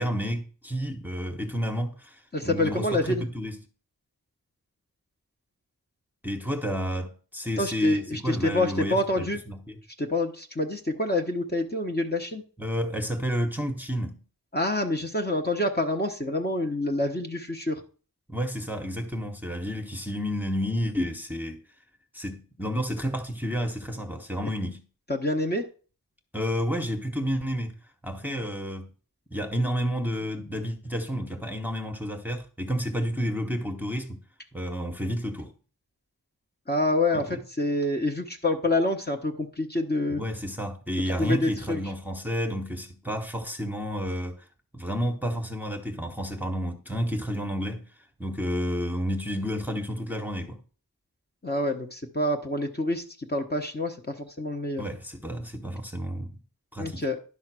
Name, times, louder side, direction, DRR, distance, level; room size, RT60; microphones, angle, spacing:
voice 1, 0.0-3.6 6.2-9.8 12.6-14.2 18.3-21.6 22.1-24.8 26.3-27.8 28.0-28.9 29.3-34.2 34.5-35.5 37.1-37.4 40.2-44.5 44.7-47.9 48.2-50.6 54.8-56.4 56.7-57.1, equal, 5° right, 1.1 m, -30 dB
voice 2, 2.3-3.3 7.6-9.4 10.0-12.4 14.5-17.8 25.1-25.7 36.7-40.2 41.2-41.8 51.4-53.0 53.3-54.8 56.8-57.2, left 1 dB, 25° left, 1.1 m, -27 dB
11.0 x 3.9 x 6.1 m
wide cardioid pair, 55°, 35 cm